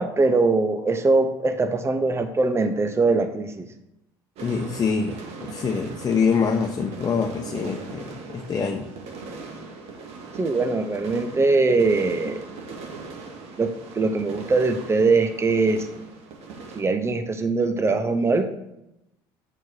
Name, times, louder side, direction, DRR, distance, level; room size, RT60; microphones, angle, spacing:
voice 1, 0.0-3.7 10.4-12.4 13.6-15.9 16.7-18.5, right 3 dB, 25° right, 8 dB, 0.9 m, -22 dB
voice 2, 4.4-8.9, left 5 dB, 35° left, 3 dB, 1.0 m, -25 dB
sound 1, 4.4-16.8, right 4 dB, 65° right, 1.8 m, -39 dB
7.9 x 4.5 x 6.4 m, 0.85 s
supercardioid pair, 75°, 11 cm